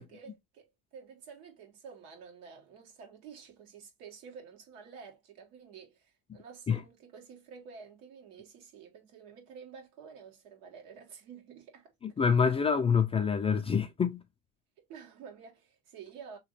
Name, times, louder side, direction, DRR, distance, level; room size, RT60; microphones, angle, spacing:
voice 1, 0.0-11.9 14.8-16.4, right 6 dB, 75° right, 1.6 m, -50 dB
voice 2, 12.0-14.2, left 6 dB, 15° left, 0.4 m, -26 dB
3.0 x 2.8 x 3.0 m
supercardioid pair, 115°, 35 cm